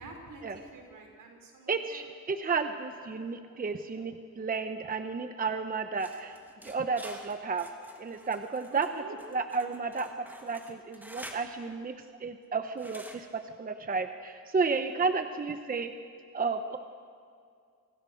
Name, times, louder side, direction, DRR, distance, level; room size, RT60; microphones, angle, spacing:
voice 1, 0.0-2.0 8.7-9.2, right 3 dB, 70° right, 2 dB, 5.7 m, -47 dB
voice 2, 1.7-6.4 6.6-7.7 8.0-9.0 9.3-15.9 16.3-16.8, right 4 dB, 25° right, 8 dB, 0.9 m, -32 dB
sound 1, 6.0-11.5 12.8-13.2, right 1 dB, 5° right, 2.3 m, -49 dB
28.5 x 25.0 x 6.5 m, 2.3 s
wide cardioid pair, 170°, 34 cm